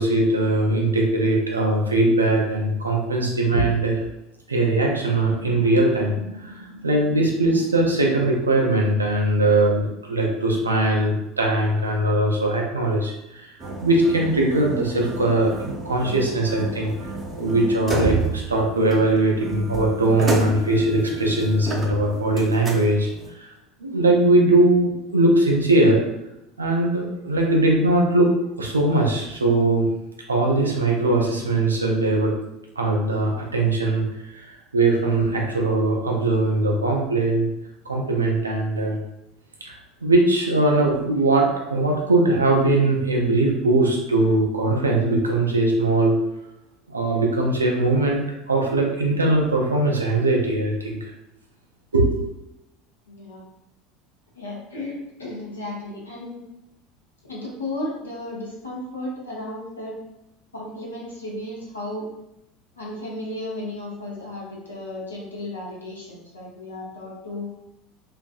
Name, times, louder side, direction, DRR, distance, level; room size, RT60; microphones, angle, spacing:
voice 1, 0.0-4.0 4.5-16.9 17.4-23.1 23.4-23.5 23.8-26.0 26.6-28.3 28.6-29.8 30.3-32.3 32.8-37.5 37.9-39.0 39.6-46.2 46.9-48.2 48.5-51.1 51.9-52.3, right 2 dB, 80° right, 0 dB, 0.4 m, -20 dB
sound 1, 13.6-23.3, right 2 dB, 25° right, 0.5 m, -30 dB
voice 2, 53.1-53.4 54.3-56.4 57.2-60.0 60.5-62.1 62.8-67.5, left 1 dB, 80° left, -4 dB, 0.7 m, -34 dB
2.5 x 2.4 x 2.3 m, 0.87 s
figure-of-eight pair, 70°, 0 cm